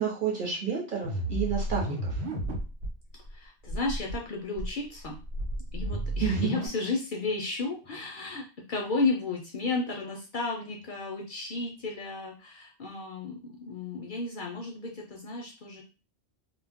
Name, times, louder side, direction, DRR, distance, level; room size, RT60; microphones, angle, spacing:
voice 1, 0.0-2.2 6.2-6.5, right 7 dB, 50° right, -2 dB, 0.9 m, -30 dB
sound 1, 1.0-2.9 3.2-3.3 3.6-4.1 4.5-6.7, right 1 dB, 80° right, 0.9 m, -32 dB
voice 2, 3.3-5.2 5.7-15.8, left 3 dB, 60° left, 0 dB, 0.6 m, -33 dB
2.3 x 2.0 x 3.4 m, 0.34 s
omnidirectional pair, 1.1 m